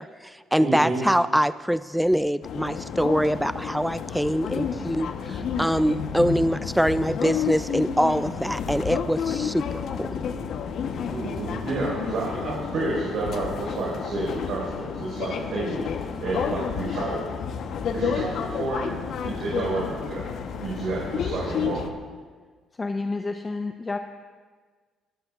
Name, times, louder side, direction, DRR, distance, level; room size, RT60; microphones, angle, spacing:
voice 1, 0.0-10.1, equal, 5° right, 14 dB, 0.4 m, -24 dB
voice 2, 0.6-1.0 11.1-17.2 17.9-18.9 19.2-20.2 20.6-21.9, right 2 dB, 70° right, -5 dB, 4.8 m, -30 dB
sound 1, 2.4-21.9, left 7 dB, 65° left, 1.0 m, -31 dB
voice 3, 22.8-24.0, left 3 dB, 30° left, 6 dB, 0.8 m, -29 dB
22.5 x 14.5 x 2.5 m, 1.5 s
supercardioid pair, 55°, 0 cm